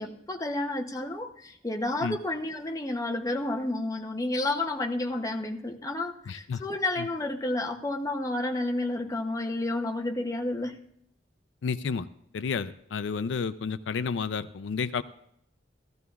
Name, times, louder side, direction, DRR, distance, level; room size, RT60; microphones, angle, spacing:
voice 1, 0.0-10.8, left 2 dB, 20° left, 2 dB, 0.7 m, -31 dB
voice 2, 6.3-6.6 7.0-7.1 11.6-12.1 12.3-15.0, left 5 dB, 85° left, 13 dB, 0.4 m, -31 dB
16.0 x 13.5 x 2.4 m, 0.73 s
head